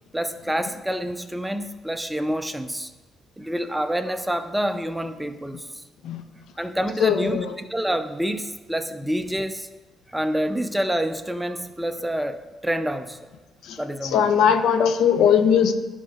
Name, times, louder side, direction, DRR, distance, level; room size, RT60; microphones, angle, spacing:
voice 1, 0.1-2.9 3.4-5.8 6.6-9.7 10.1-13.3 13.8-14.3, right 1 dB, 5° right, 9 dB, 0.5 m, -27 dB
voice 2, 7.0-7.5 13.6-13.8 14.1-15.7, left 7 dB, 80° left, 9 dB, 0.5 m, -19 dB
11.0 x 3.9 x 3.5 m, 1.3 s
cardioid pair, 90°, 0 cm